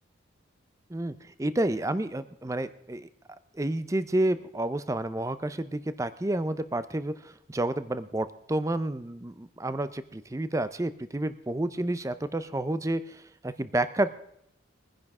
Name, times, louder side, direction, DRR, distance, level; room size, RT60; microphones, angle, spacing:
voice 1, 0.9-3.1 3.6-7.1 7.5-14.1, right 1 dB, 15° right, 13 dB, 0.4 m, -30 dB
21.5 x 10.5 x 3.6 m, 0.74 s
head